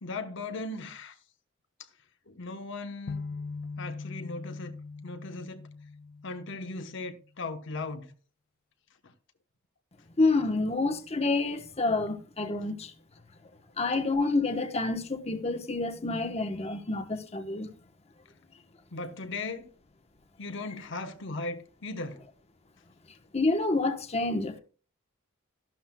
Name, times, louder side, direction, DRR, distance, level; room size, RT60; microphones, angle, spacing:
voice 1, 0.0-1.2 2.3-3.2 3.8-4.7 5.0-5.7 6.2-8.1 9.0-9.1 18.9-19.7 20.4-22.2, left 3 dB, 65° left, 1.0 m, -37 dB
sound 1, 3.1-7.1, left 4 dB, 45° left, 0.4 m, -41 dB
voice 2, 10.2-12.9 13.8-17.7 23.3-24.6, left 3 dB, 30° left, 1.0 m, -28 dB
13.5 x 12.0 x 2.3 m
head